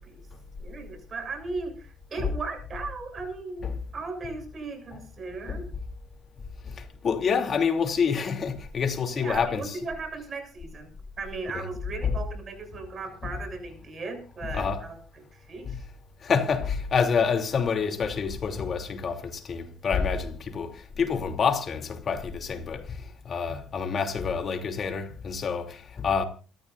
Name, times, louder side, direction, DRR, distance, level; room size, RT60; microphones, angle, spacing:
voice 1, 0.6-5.7 9.1-10.9 11.2-15.0 15.3-15.8, right 4 dB, 35° right, 7.2 m, -37 dB
voice 2, 6.6-9.8 11.5-11.6 12.0-12.1 13.2-13.4 14.4-14.9 15.6-15.8 16.2-26.2, left 6 dB, 40° left, 2.9 m, -28 dB
28.0 x 14.0 x 2.6 m
cardioid pair, 115°, 0 cm